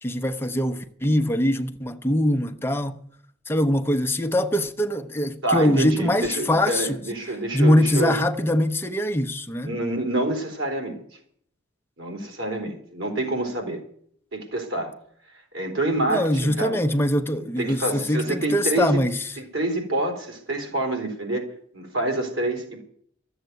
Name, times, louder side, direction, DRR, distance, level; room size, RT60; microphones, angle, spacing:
voice 1, 0.0-3.0 3.5-7.0 7.5-9.7 16.1-19.2, left 1 dB, 10° left, 0.9 m, -22 dB
voice 2, 5.4-8.2 9.6-11.0 12.0-13.8 14.3-14.9 15.5-16.8 17.4-19.0 19.5-21.4 21.7-22.8, right 1 dB, 90° right, 3.9 m, -27 dB
13.5 x 8.0 x 9.3 m
head